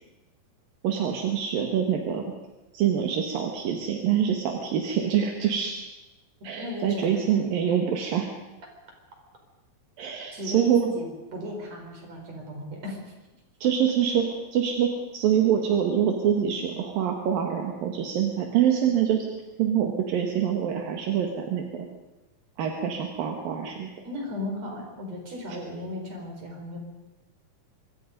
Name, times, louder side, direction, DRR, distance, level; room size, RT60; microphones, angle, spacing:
voice 1, 0.8-2.3 2.7-5.8 6.4-8.3 10.0-10.9 13.6-19.3 19.6-21.9 22.6-23.9, right 8 dB, 75° right, 2 dB, 3.4 m, -25 dB
voice 2, 6.6-7.8 10.3-13.1 24.0-26.8, left 1 dB, 45° right, 1 dB, 6.0 m, -36 dB
25.5 x 23.5 x 5.3 m, 1.0 s
omnidirectional pair, 4.1 m